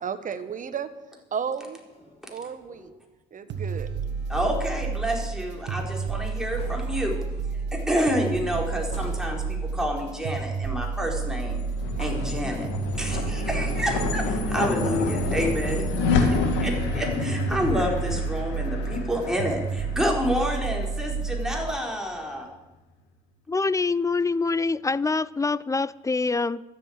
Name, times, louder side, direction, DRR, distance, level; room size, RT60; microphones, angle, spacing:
voice 1, 0.0-0.9 1.3-1.8 2.3-2.9 3.3-3.9, right 7 dB, 45° right, 11 dB, 1.3 m, -33 dB
sound 1, 1.9-3.1 3.4-4.9 6.2-6.3 6.5-7.2 8.0-8.5 8.9-9.6 10.5-10.6 11.9-12.6 13.1-14.4 14.9-16.5, left 1 dB, 30° left, 4.0 m, -47 dB
sound 2, 3.5-21.8, right 5 dB, 65° right, 1.6 m, -31 dB
voice 2, 4.3-7.2 7.7-11.6 12.0-12.7 12.9-15.9 16.1-22.5, equal, 5° right, 0 dB, 4.2 m, -29 dB
sound 3, 11.1-21.6, left 4 dB, 80° left, 2.3 m, -29 dB
voice 3, 23.5-26.6, left 3 dB, 15° left, 20 dB, 0.4 m, -25 dB
12.5 x 7.9 x 8.7 m, 1.1 s
hypercardioid pair, 60°, 19 cm